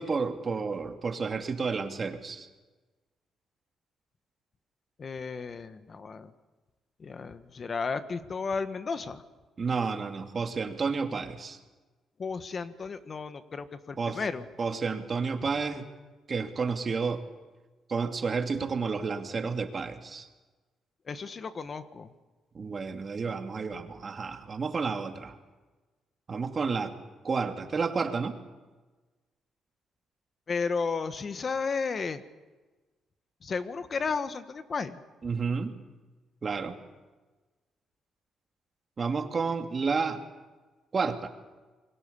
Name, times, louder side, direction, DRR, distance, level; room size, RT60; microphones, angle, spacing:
voice 1, 0.0-2.5 9.6-11.6 14.0-14.2 14.6-15.9 16.3-17.2 17.9-20.3 22.5-25.4 26.3-26.9 27.2-28.4 35.2-35.8 36.4-36.8 39.0-40.2 40.9-41.3, right 5 dB, 40° right, 5 dB, 2.6 m, -31 dB
voice 2, 5.0-6.3 7.0-9.2 12.2-14.4 21.1-22.1 30.5-32.2 33.4-35.0, left 5 dB, 40° left, 11 dB, 1.4 m, -33 dB
27.5 x 23.0 x 7.1 m, 1.3 s
cardioid pair, 90°, 0 cm